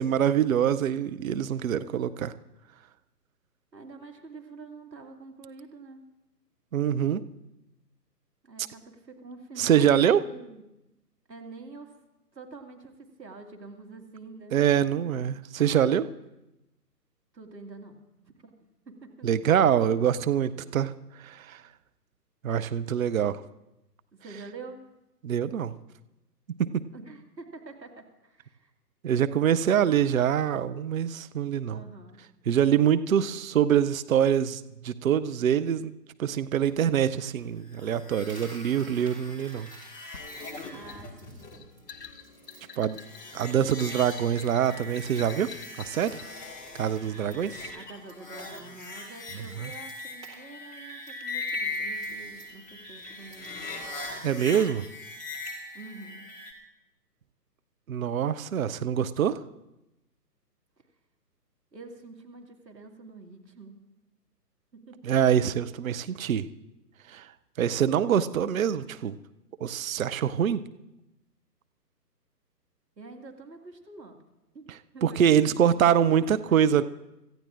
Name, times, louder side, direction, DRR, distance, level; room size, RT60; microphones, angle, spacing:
voice 1, 0.0-2.3 6.7-7.2 9.6-10.2 14.5-16.1 19.2-20.9 21.2-21.6 22.4-23.4 25.2-25.7 26.6-26.8 29.0-31.8 32.5-35.9 36.2-39.7 42.8-43.0 43.3-45.5 45.8-46.2 46.8-47.7 49.6-49.7 54.2-54.9 57.9-59.4 65.0-66.5 67.1-67.2 67.6-69.1 69.6-70.6 75.0-76.8, right 9 dB, 55° right, 12 dB, 0.6 m, -24 dB
voice 2, 3.7-6.0 8.4-10.6 11.3-11.9 12.3-14.6 17.3-19.4 20.5-20.8 24.1-24.8 26.9-28.7 31.7-32.2 40.7-41.7 47.7-53.8 55.7-56.2 61.7-63.8 64.7-65.1 73.0-74.2 74.5-76.8, right 3 dB, 85° right, 3 dB, 2.4 m, -47 dB
sound 1, 37.7-56.5, left 3 dB, 15° left, 2.0 m, -40 dB
Coin (dropping), 38.1-46.4 46.7-47.0 47.3-50.4 50.7-53.8, right 4 dB, 10° right, 1.8 m, -54 dB
sound 2, 40.1-46.3, left 8 dB, 75° left, 1.3 m, -47 dB
26.5 x 14.5 x 2.5 m, 0.93 s
figure-of-eight pair, 135°, 49 cm